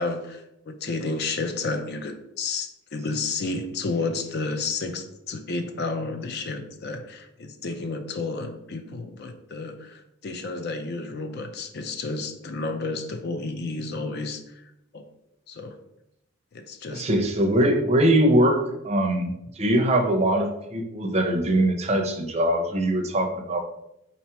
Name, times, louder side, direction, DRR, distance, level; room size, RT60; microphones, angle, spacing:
voice 1, 0.0-14.6 14.9-15.0 15.5-15.8 16.5-17.1, left 3 dB, 50° left, 7 dB, 0.4 m, -31 dB
voice 2, 16.9-18.6 18.8-23.6, right 1 dB, 30° right, 4 dB, 0.6 m, -22 dB
4.0 x 2.9 x 4.4 m, 0.85 s
head